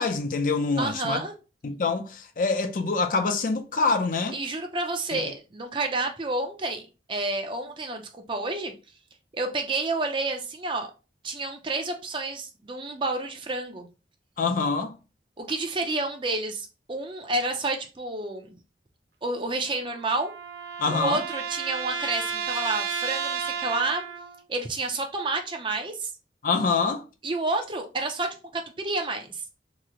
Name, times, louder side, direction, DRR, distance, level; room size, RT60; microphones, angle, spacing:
voice 1, 0.0-1.2 1.6-4.4 5.1-5.2 14.4-15.0 20.8-21.2 26.4-27.0, left 4 dB, 50° left, 0.4 m, -25 dB
voice 2, 0.8-1.3 4.3-6.8 7.1-8.7 9.3-10.9 11.2-13.9 15.4-18.6 19.2-20.3 20.9-24.0 24.5-26.1 27.2-29.4, right 2 dB, 30° right, 0.5 m, -30 dB
sound 1, 19.6-24.4, right 6 dB, 85° right, 0.7 m, -32 dB
2.9 x 2.0 x 3.6 m
head